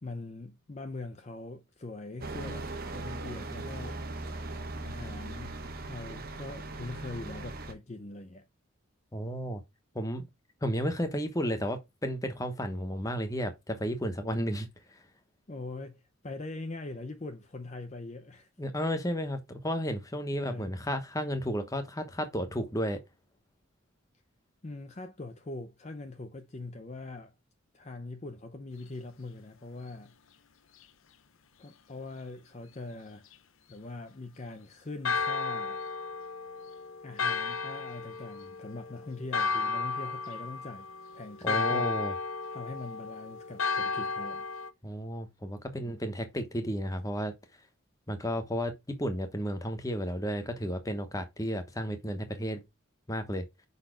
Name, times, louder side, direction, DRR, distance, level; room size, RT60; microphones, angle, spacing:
voice 1, 0.0-2.7 2.9-4.0 4.8-5.5 5.9-8.4 15.5-18.5 20.3-20.7 24.6-27.3 27.7-30.1 31.6-33.3 33.7-35.8 37.0-40.9 41.1-42.0 42.5-44.5 45.7-46.0, left 2 dB, 30° left, 0.6 m, -42 dB
sound 1, 2.2-7.7, right 2 dB, 45° right, 0.9 m, -39 dB
voice 2, 9.1-9.6 9.9-10.3 10.6-15.0 18.6-23.0 41.4-42.1 44.8-47.3 48.1-52.6 53.1-53.5, equal, 15° left, 1.0 m, -33 dB
Church bell, 35.0-44.7, left 4 dB, 70° left, 0.7 m, -33 dB
5.6 x 4.1 x 5.0 m
head